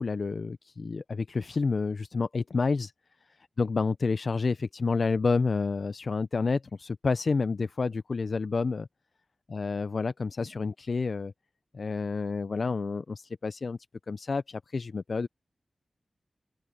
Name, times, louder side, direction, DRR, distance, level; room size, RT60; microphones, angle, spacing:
voice 1, 0.0-2.9 3.6-8.9 9.5-11.3 11.7-13.8 14.1-15.3, left 4 dB, 60° left, 0.5 m, -29 dB
open air
wide cardioid pair, 70°, 0 cm